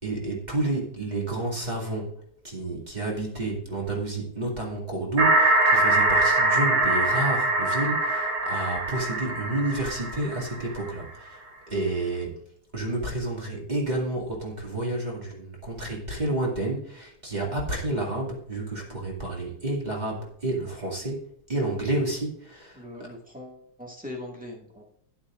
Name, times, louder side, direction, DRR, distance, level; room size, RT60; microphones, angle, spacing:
voice 1, 0.0-2.1 2.4-12.4 12.7-21.2 21.5-23.1, right 2 dB, 20° right, -3 dB, 2.3 m, -30 dB
sound 1, 5.2-10.9, right 2 dB, 85° right, 2.5 m, -23 dB
voice 2, 22.7-24.8, left 1 dB, 5° right, -2 dB, 1.5 m, -41 dB
12.0 x 10.5 x 2.5 m, 0.72 s
omnidirectional pair, 2.4 m